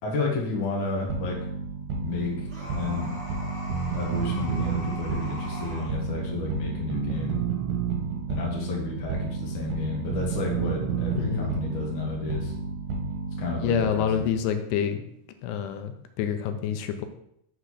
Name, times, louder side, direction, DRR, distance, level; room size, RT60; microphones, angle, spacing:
voice 1, 0.0-1.4 2.0-2.5 2.7-3.1 3.9-7.4 8.3-12.5 13.4-14.3, left 3 dB, 50° left, -2 dB, 1.5 m, -31 dB
sound 1, 1.1-14.0, right 5 dB, 65° right, 2.6 m, -31 dB
sound 2, 2.5-5.9, left 1 dB, 35° right, 1.8 m, -40 dB
voice 2, 11.1-11.6 13.6-15.0 15.4-17.1, left 7 dB, 85° left, 8 dB, 2.7 m, -27 dB
6.6 x 3.9 x 6.3 m, 0.75 s
omnidirectional pair, 4.7 m